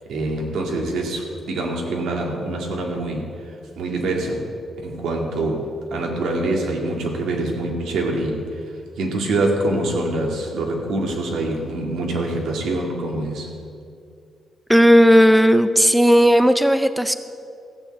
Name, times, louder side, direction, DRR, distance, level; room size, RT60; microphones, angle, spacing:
voice 1, 0.1-3.3 3.8-4.5 4.8-8.4 9.0-13.5, right 2 dB, 85° right, 1 dB, 2.3 m, -25 dB
voice 2, 14.7-17.1, equal, ahead, 11 dB, 0.4 m, -14 dB
15.0 x 7.2 x 7.8 m, 2.4 s
cardioid pair, 150°, 0 cm